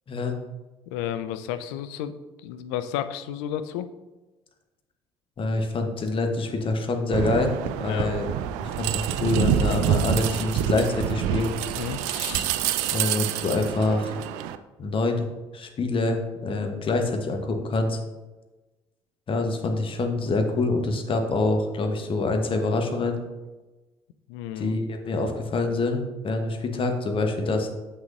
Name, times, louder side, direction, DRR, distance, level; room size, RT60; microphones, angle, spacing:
voice 1, 0.9-2.1 2.4-3.9 7.8-8.1 11.7-12.7 24.3-24.8, left 10 dB, 65° left, 11 dB, 0.4 m, -32 dB
voice 2, 5.4-8.3 8.6-11.5 12.9-14.2 14.8-15.3 15.5-18.0 19.3-23.2 24.6-27.7, left 2 dB, 40° left, 4 dB, 1.0 m, -26 dB
sound 1, 7.1-14.6, right 10 dB, 65° right, 0.4 m, -27 dB
7.4 x 6.2 x 2.5 m, 1.1 s
figure-of-eight pair, 55°, 14 cm